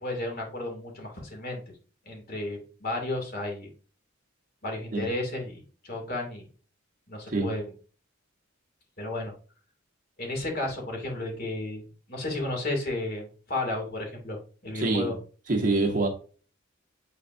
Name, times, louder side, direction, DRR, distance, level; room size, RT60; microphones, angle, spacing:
voice 1, 0.0-1.6 2.1-3.7 4.6-6.5 7.1-7.7 9.0-9.3 10.2-15.2, left 2 dB, 50° left, 2.6 m, -33 dB
voice 2, 14.7-15.1 15.5-16.1, right 2 dB, 40° right, 1.4 m, -25 dB
8.2 x 5.1 x 2.7 m
head